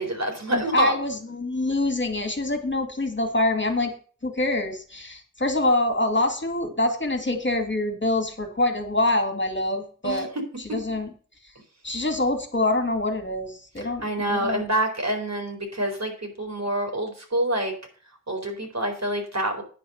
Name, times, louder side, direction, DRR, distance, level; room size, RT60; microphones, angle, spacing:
voice 1, 0.0-1.0 10.0-10.2 13.8-17.7 18.3-19.6, right 1 dB, 55° right, 2 dB, 4.3 m, -27 dB
voice 2, 0.5-3.9 4.2-10.3 10.7-11.1 11.8-14.6, left 2 dB, 35° left, 4 dB, 2.2 m, -25 dB
10.0 x 4.8 x 7.8 m, 0.40 s
cardioid pair, 40°, 32 cm